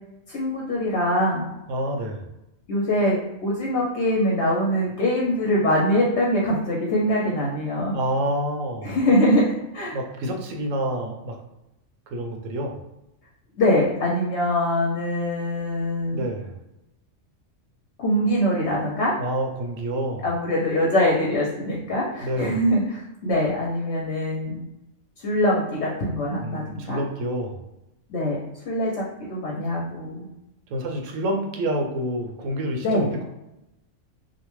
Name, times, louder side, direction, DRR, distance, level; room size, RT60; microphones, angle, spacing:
voice 1, 0.3-1.5 2.7-7.9 8.8-10.0 13.6-16.3 18.0-19.1 20.2-24.6 25.2-27.0 28.1-28.4 28.7-28.9 29.3-30.3 32.8-33.1, left 1 dB, 70° left, -4 dB, 0.9 m, -23 dB
voice 2, 1.7-2.3 7.9-9.0 9.9-11.4 12.1-12.8 16.1-16.5 19.2-20.2 22.2-22.6 26.4-27.6 30.7-33.3, right 1 dB, 85° right, 2 dB, 1.0 m, -28 dB
2.6 x 2.1 x 3.0 m, 0.91 s
omnidirectional pair, 1.3 m